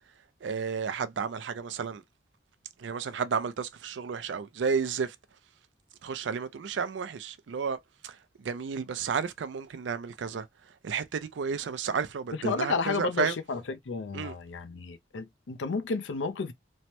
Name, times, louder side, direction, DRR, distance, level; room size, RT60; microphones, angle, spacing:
voice 1, 0.4-2.0 2.8-5.2 6.0-13.4 14.1-14.3, right 6 dB, 80° right, 0.4 m, -32 dB
voice 2, 12.3-16.5, left 4 dB, 90° left, 0.5 m, -32 dB
3.1 x 2.1 x 2.8 m
head